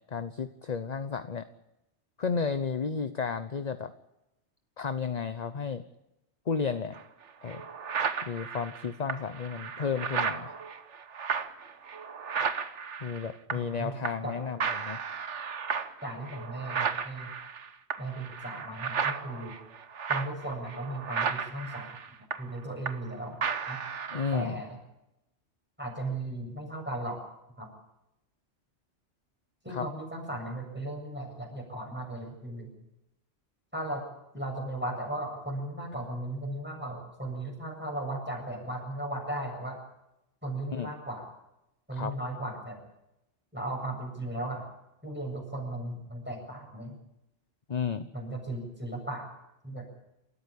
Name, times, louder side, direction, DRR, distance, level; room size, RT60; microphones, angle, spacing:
voice 1, 0.1-1.5 2.2-3.9 4.8-5.8 6.5-7.0 7.4-7.6 8.2-10.5 13.0-15.0 24.1-24.6 29.7-29.9 40.7-40.9 41.9-42.1 47.7-48.1, left 5 dB, 40° left, 11 dB, 0.9 m, -32 dB
sound 1, 6.9-7.0 7.5-13.8 14.0-14.3 14.6-23.1 23.4-24.4, right 6 dB, 90° right, 1.5 m, -34 dB
voice 2, 13.5-14.0 14.2-14.4 16.0-17.3 18.0-19.6 20.1-21.9 22.4-23.4 23.7-23.8 24.3-24.8 25.8-27.2 27.6-27.7 29.6-32.7 33.7-34.0 34.3-39.8 40.4-41.2 41.9-42.8 43.5-44.6 45.0-47.0 48.1-49.3 49.6-49.9, right 1 dB, 10° right, 1 dB, 7.5 m, -36 dB
28.5 x 14.0 x 8.5 m, 0.89 s
omnidirectional pair, 1.2 m